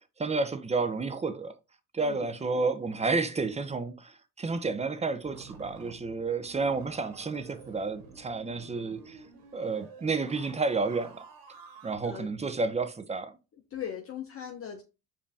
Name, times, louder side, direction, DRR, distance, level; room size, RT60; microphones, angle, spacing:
voice 1, 0.2-1.5 1.9-9.2 9.5-11.2 11.8-13.3, right 3 dB, 20° right, 0.6 m, -31 dB
voice 2, 2.0-2.3 12.0-12.3 13.7-14.8, left 9 dB, 35° left, 0.8 m, -39 dB
sound 1, 5.2-12.0, right 5 dB, 75° right, 1.2 m, -50 dB
5.0 x 2.7 x 3.4 m
supercardioid pair, 75°, 37 cm